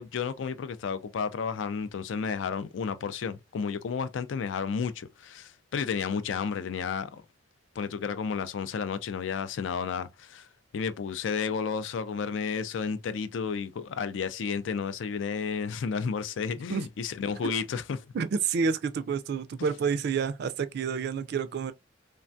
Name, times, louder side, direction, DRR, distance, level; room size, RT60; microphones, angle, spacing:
voice 1, 0.0-7.2 7.8-10.5 10.7-18.0, left 6 dB, 75° left, 0.4 m, -32 dB
voice 2, 18.1-21.7, right 5 dB, 60° right, 0.3 m, -29 dB
3.3 x 2.2 x 2.5 m
head